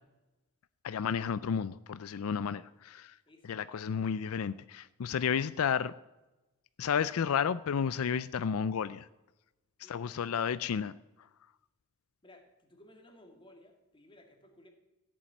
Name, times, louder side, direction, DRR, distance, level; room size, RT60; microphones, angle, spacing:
voice 1, 0.8-3.1 3.5-5.9 6.8-9.1 9.9-10.9, left 7 dB, 80° left, 16 dB, 0.4 m, -32 dB
voice 2, 9.8-10.5 12.2-14.7, left 1 dB, 25° left, 3 dB, 2.3 m, -58 dB
15.0 x 7.5 x 8.9 m, 1.1 s
head